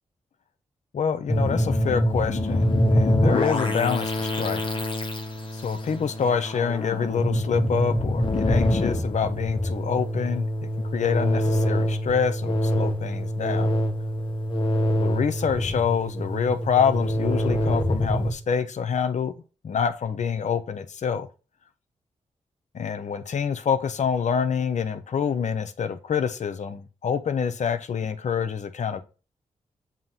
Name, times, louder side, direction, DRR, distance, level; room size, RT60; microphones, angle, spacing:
voice 1, 0.9-4.6 5.6-10.5 10.9-13.7 15.0-19.3 19.6-21.3 22.7-29.0, left 7 dB, 65° left, 0.9 m, -26 dB
sound 1, 1.3-18.3, left 1 dB, 40° left, 1.6 m, -25 dB
7.4 x 3.0 x 5.7 m
supercardioid pair, 50°, 13 cm